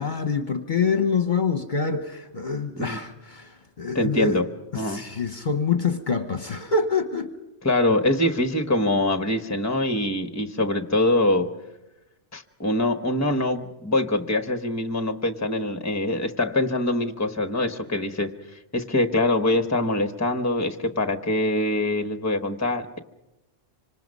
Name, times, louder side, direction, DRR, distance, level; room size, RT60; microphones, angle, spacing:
voice 1, 0.0-4.4 4.7-7.3, left 5 dB, 45° left, 8 dB, 1.1 m, -26 dB
voice 2, 3.9-4.4 4.7-5.0 7.6-11.5 12.3-18.4 18.7-23.0, left 1 dB, 15° left, 8 dB, 1.0 m, -24 dB
26.0 x 25.5 x 5.4 m, 0.98 s
omnidirectional pair, 1.2 m